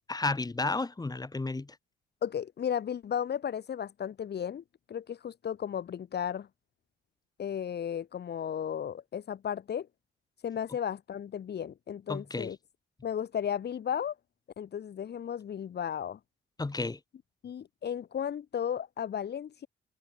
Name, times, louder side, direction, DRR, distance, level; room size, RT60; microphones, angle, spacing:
voice 1, 0.1-1.8 12.1-12.5 16.6-17.0, left 3 dB, 20° left, 3.9 m, -32 dB
voice 2, 2.2-6.5 7.4-9.9 10.4-12.6 13.0-14.1 14.6-16.2 17.4-19.7, left 8 dB, 55° left, 2.8 m, -34 dB
cardioid pair, 90°, 20 cm